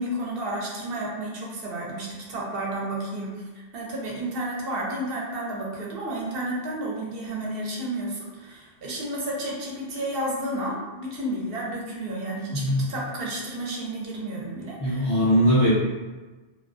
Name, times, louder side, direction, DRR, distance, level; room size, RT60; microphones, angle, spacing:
voice 1, 0.0-15.2, right 1 dB, 65° right, -3 dB, 0.8 m, -31 dB
voice 2, 12.5-12.9 14.8-15.7, equal, 40° left, -9 dB, 0.3 m, -20 dB
2.2 x 2.2 x 2.4 m, 1.2 s
omnidirectional pair, 1.1 m